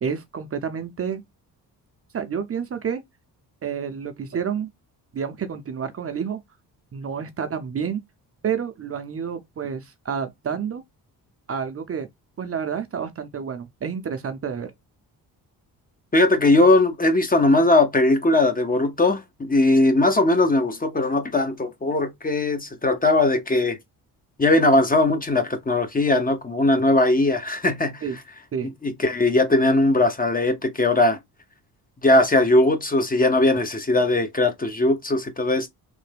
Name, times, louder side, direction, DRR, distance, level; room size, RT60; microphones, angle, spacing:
voice 1, 0.0-1.2 2.1-3.0 3.6-4.7 5.1-6.4 6.9-8.0 8.4-10.8 11.5-12.1 12.4-14.7 28.0-28.2 28.5-28.7, right 7 dB, 40° right, 0.6 m, -29 dB
voice 2, 16.1-23.8 24.4-28.0 28.8-31.2 32.0-35.7, left 2 dB, 20° left, 0.7 m, -19 dB
3.3 x 2.1 x 3.3 m
cardioid pair, 75°, 39 cm